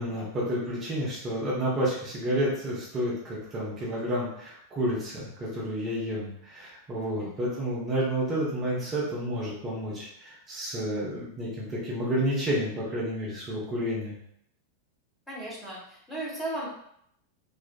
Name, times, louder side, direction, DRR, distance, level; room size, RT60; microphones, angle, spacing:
voice 1, 0.0-14.2, equal, 25° right, -7 dB, 0.9 m, -30 dB
voice 2, 15.3-16.7, right 1 dB, 10° left, -7 dB, 1.2 m, -36 dB
3.2 x 2.4 x 2.2 m, 0.72 s
figure-of-eight pair, 90°, 0 cm